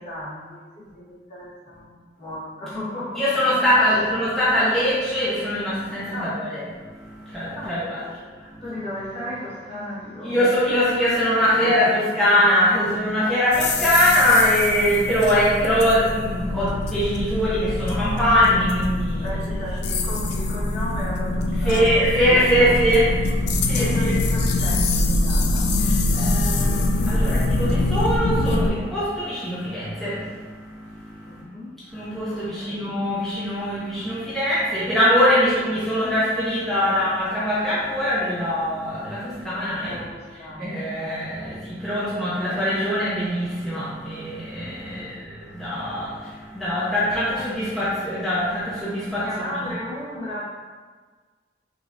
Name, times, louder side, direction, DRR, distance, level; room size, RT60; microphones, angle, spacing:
voice 1, 0.0-3.4 3.8-4.0 6.1-6.4 7.5-10.3 11.5-12.2 19.2-22.1 22.6-22.8 23.7-25.7 31.3-31.7 32.3-32.9 39.9-40.8 41.3-41.5 44.8-45.2 49.2-50.5, left 1 dB, 35° left, -8 dB, 1.2 m, -35 dB
voice 2, 3.2-8.0 8.5-8.6 10.2-19.4 21.6-24.1 25.8-31.4 31.9-40.0 40.5-49.5, equal, ahead, -11 dB, 0.8 m, -22 dB
sound 1, 13.5-28.7, left 2 dB, 65° left, 0.4 m, -24 dB
5.0 x 3.0 x 2.6 m, 1.5 s
head